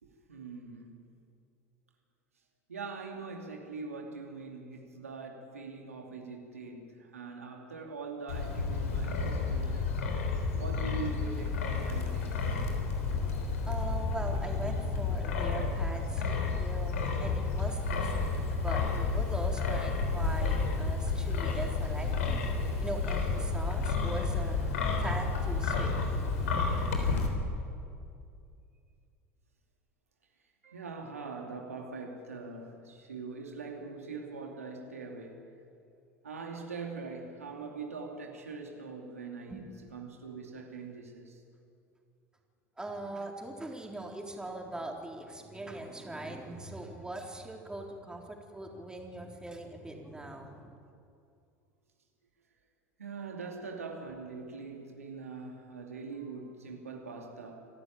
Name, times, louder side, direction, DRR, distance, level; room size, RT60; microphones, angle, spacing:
voice 1, 0.0-1.1 2.7-10.0 10.5-12.5 30.6-35.5 36.2-39.6 39.9-41.4 53.0-57.7, right 4 dB, 90° right, 1 dB, 2.7 m, -42 dB
Wind, 8.3-27.3, left 4 dB, 80° left, 3.6 m, -31 dB
voice 2, 13.7-18.4 18.6-22.4 22.8-24.6 25.0-25.9 39.5-39.7 42.8-50.8, right 1 dB, 10° right, 1 dB, 3.8 m, -41 dB
26.5 x 13.0 x 9.0 m, 2.4 s
hypercardioid pair, 75°, 8 cm